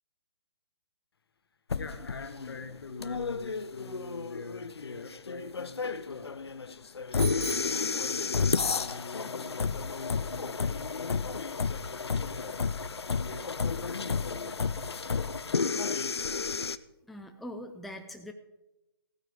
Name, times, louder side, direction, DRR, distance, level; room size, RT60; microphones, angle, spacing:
sound 1, 1.7-16.8, left 5 dB, 85° left, 0.6 m, -32 dB
voice 1, 1.8-11.3 12.1-12.7 13.0-15.2, left 3 dB, 70° left, 9 dB, 1.7 m, -44 dB
Bicycle bell, 7.2-8.7, right 6 dB, 60° right, 1.8 m, -43 dB
voice 2, 17.1-18.3, left 1 dB, ahead, 4 dB, 0.5 m, -42 dB
15.5 x 9.7 x 4.9 m, 0.97 s
hypercardioid pair, 145°, 13 cm